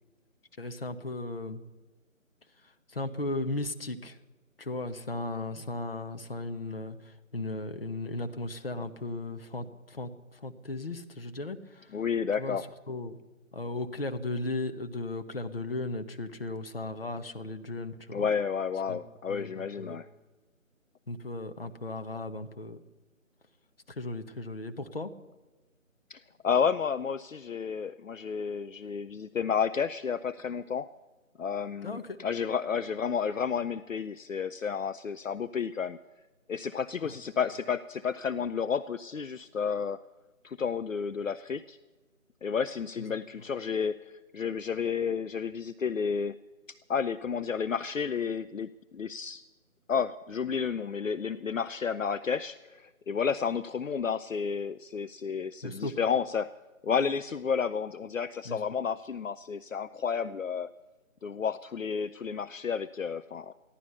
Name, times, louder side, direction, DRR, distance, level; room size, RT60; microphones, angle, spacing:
voice 1, 0.6-1.6 2.6-4.2 4.6-12.0 12.4-13.2 13.5-18.3 18.9-19.0 19.3-20.0 21.1-22.8 23.9-25.1 31.8-32.2 37.0-37.2 43.0-43.1 43.4-43.5 55.6-55.9 58.4-58.6, left 2 dB, 45° left, 7 dB, 1.1 m, -36 dB
voice 2, 11.9-12.6 18.1-20.1 26.1-30.9 31.4-36.0 36.5-40.0 40.4-41.8 42.4-46.4 46.9-49.4 49.9-56.5 56.8-60.7 61.2-63.5, left 6 dB, 70° left, 13 dB, 0.6 m, -31 dB
15.0 x 11.5 x 6.8 m, 1.1 s
figure-of-eight pair, 160°, 41 cm